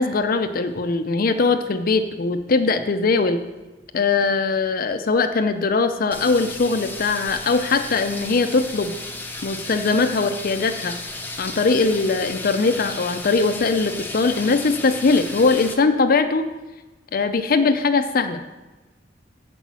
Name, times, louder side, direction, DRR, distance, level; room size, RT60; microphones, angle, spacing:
voice 1, 0.0-3.4 3.9-8.9 9.4-10.9 11.4-16.5 17.1-18.4, left 4 dB, 50° left, 8 dB, 0.5 m, -21 dB
sound 1, 6.1-15.7, left 2 dB, 10° left, 0.8 m, -34 dB
7.0 x 5.6 x 7.3 m, 1.2 s
head